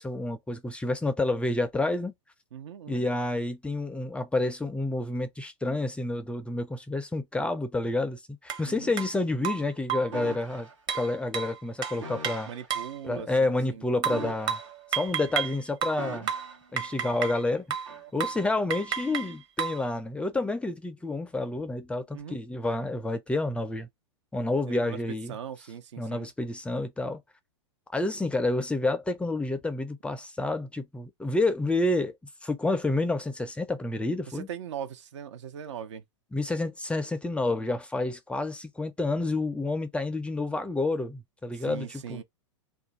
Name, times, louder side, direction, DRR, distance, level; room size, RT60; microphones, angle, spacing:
voice 1, 0.0-2.1 2.9-10.7 10.9-12.5 13.0-14.6 14.9-16.3 16.7-17.8 18.1-23.9 24.3-25.3 26.0-27.2 27.9-32.1 32.4-34.5 36.3-42.2, left 2 dB, 5° left, 0.4 m, -29 dB
voice 2, 2.5-3.1 8.6-9.0 12.5-13.8 16.0-16.3 22.1-22.4 24.7-25.0 25.3-26.3 34.3-36.0 41.5-42.2, right 8 dB, 70° right, 0.6 m, -40 dB
sound 1, 8.5-8.6 9.0-9.1 9.4-10.2 10.9-13.0 14.0-15.6 15.8-17.4 17.7-17.9 18.2-18.4 18.7-19.8, right 8 dB, 30° right, 0.8 m, -32 dB
sound 2, 10.1-10.7 12.0-12.7 14.0-15.0 16.0-16.7 17.9-18.1, right 3 dB, 85° right, 1.1 m, -40 dB
2.4 x 2.2 x 3.9 m
hypercardioid pair, 105°, 16 cm